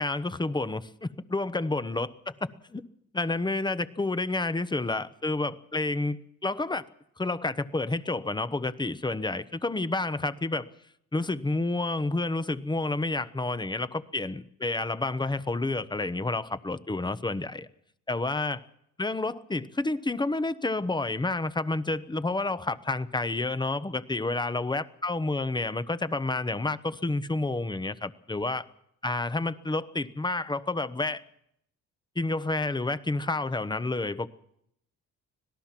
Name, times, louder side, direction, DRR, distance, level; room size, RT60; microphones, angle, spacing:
voice 1, 0.0-2.8 3.1-6.8 7.2-10.7 11.1-17.7 18.1-18.6 19.0-28.6 29.0-31.2 32.1-34.3, left 2 dB, 15° left, 14 dB, 1.1 m, -29 dB
25.5 x 18.0 x 6.0 m, 0.74 s
cardioid pair, 90°, 30 cm